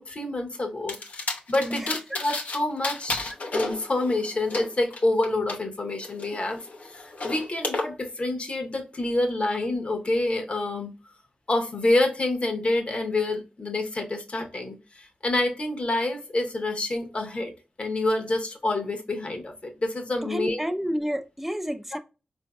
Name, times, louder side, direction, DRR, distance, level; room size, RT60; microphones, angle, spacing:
voice 1, 0.0-10.9 11.5-17.5 17.8-20.6, left 2 dB, 50° left, 0.9 m, -27 dB
sound 1, 0.9-2.6 2.8-5.6 6.0-7.8, left 3 dB, 80° left, 0.8 m, -32 dB
voice 2, 1.7-2.2 20.2-22.0, equal, 5° right, 0.4 m, -30 dB
4.3 x 2.6 x 2.3 m
wide cardioid pair, 70°, 3 cm